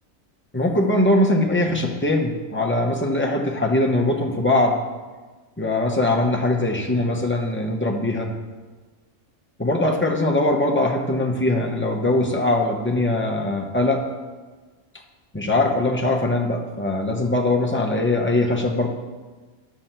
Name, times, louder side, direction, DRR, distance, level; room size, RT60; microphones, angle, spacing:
voice 1, 0.5-4.8 5.6-8.3 9.6-14.0 15.3-18.9, left 2 dB, 10° left, 1 dB, 0.9 m, -21 dB
11.5 x 4.3 x 7.4 m, 1.3 s
omnidirectional pair, 1.3 m